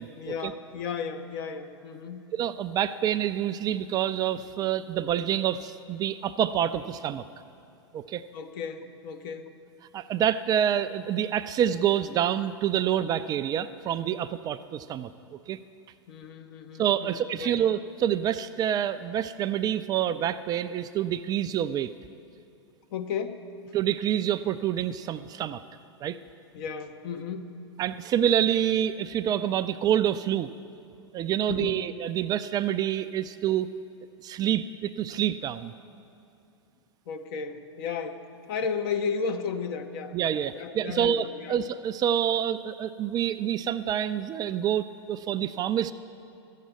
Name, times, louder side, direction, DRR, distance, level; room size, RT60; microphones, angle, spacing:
voice 1, 0.1-2.2 8.3-9.5 16.1-17.6 22.9-23.5 26.5-27.5 31.5-31.8 37.1-41.6, left 6 dB, 55° left, 7 dB, 1.0 m, -34 dB
voice 2, 2.3-7.2 7.9-8.2 9.9-15.6 16.8-21.9 23.7-25.6 26.0-26.2 27.8-30.5 31.1-33.7 34.2-35.7 40.1-45.9, right 10 dB, 25° right, 11 dB, 0.4 m, -27 dB
12.5 x 7.5 x 9.3 m, 2.6 s
hypercardioid pair, 105°, 14 cm